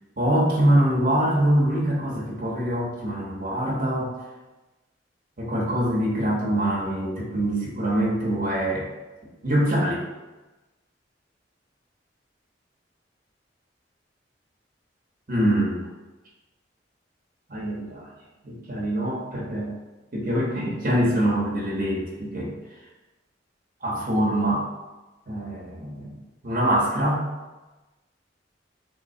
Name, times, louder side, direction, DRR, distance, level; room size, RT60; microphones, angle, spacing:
voice 1, 0.2-4.1 5.4-8.9 9.4-10.0 15.3-15.9 17.5-18.1 18.4-19.7 20.1-22.5 23.8-24.7 25.3-26.1 26.4-27.3, right 1 dB, 50° right, -5 dB, 0.9 m, -24 dB
3.4 x 3.2 x 2.7 m, 1.1 s
head